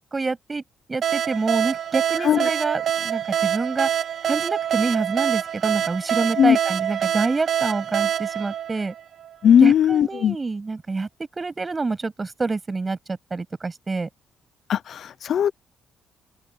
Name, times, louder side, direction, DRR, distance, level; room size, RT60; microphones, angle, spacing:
voice 1, 0.1-0.6 0.9-3.9 4.3-8.9 9.6-11.1 11.4-14.1, right 3 dB, 25° right, 7.3 m, -27 dB
sound 1, 1.0-9.5, right 9 dB, 55° right, 1.9 m, -25 dB
voice 2, 9.4-10.3 14.7-15.5, left 9 dB, 60° left, 0.5 m, -18 dB
open air
cardioid pair, 120°, 0 cm